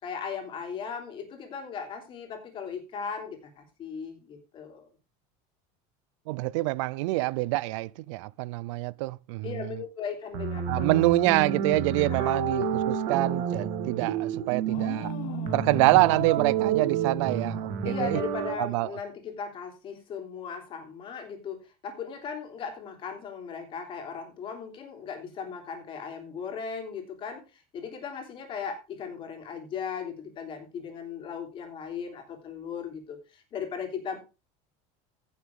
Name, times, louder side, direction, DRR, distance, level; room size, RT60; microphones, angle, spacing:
voice 1, 0.0-4.9 9.4-11.0 12.2-12.4 17.8-34.2, left 6 dB, 35° left, 3.3 m, -37 dB
voice 2, 6.3-9.8 10.7-15.1 15.5-18.2 18.6-18.9, right 20 dB, 90° right, 0.5 m, -26 dB
sound 1, 10.3-18.6, right 8 dB, 60° right, 2.1 m, -29 dB
sound 2, 14.6-17.8, left 8 dB, 70° left, 2.5 m, -39 dB
16.0 x 7.1 x 3.6 m
cardioid pair, 155°, 15 cm